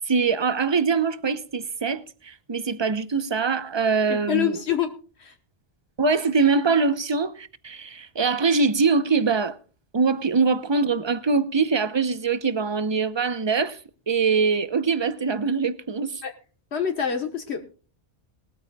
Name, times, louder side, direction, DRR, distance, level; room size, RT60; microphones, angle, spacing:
voice 1, 0.0-4.6 6.0-9.6 9.9-13.8 14.1-16.2, right 4 dB, 30° right, 0.8 m, -23 dB
voice 2, 4.3-4.9 5.2-5.3 16.2-16.3 16.7-17.6, left 8 dB, 80° left, 1.5 m, -25 dB
20.5 x 13.5 x 2.3 m
omnidirectional pair, 1.1 m